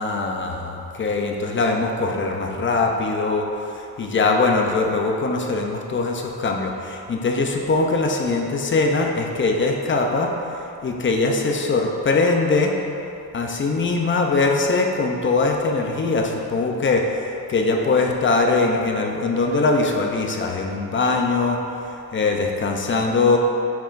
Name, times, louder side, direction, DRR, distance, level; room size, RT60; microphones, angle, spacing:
voice 1, 0.0-12.7 13.3-21.6 22.1-23.4, left 3 dB, 35° left, 2 dB, 0.5 m, -22 dB
9.0 x 4.8 x 2.5 m, 2.8 s
wide cardioid pair, 140°, 35 cm